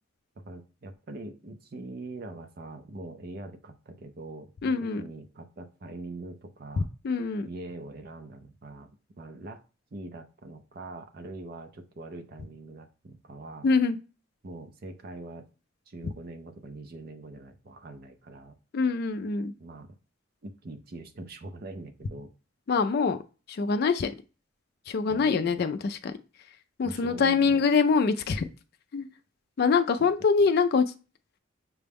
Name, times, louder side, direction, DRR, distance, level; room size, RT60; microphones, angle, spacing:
voice 1, 0.4-6.9 7.4-9.6 9.9-13.7 14.4-15.5 15.9-18.6 19.6-19.9 20.4-22.3 25.1-25.6 26.8-27.7 30.0-30.1, right 2 dB, 45° right, 7 dB, 0.5 m, -43 dB
voice 2, 4.6-5.0 7.0-7.5 13.6-14.0 18.7-19.5 22.7-23.2 23.5-24.1 24.9-26.1 26.8-28.4 28.9-29.1 29.6-30.8, left 5 dB, 50° left, 8 dB, 0.3 m, -24 dB
5.9 x 2.1 x 3.4 m, 0.33 s
head